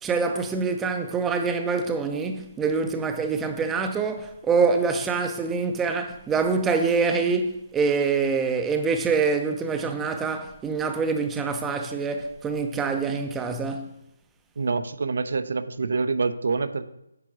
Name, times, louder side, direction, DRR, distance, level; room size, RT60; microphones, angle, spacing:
voice 1, 0.0-13.9, right 5 dB, 10° right, 0.5 m, -25 dB
voice 2, 14.6-16.9, right 4 dB, 60° right, 0.6 m, -26 dB
9.5 x 3.9 x 6.1 m
hypercardioid pair, 165°, 0 cm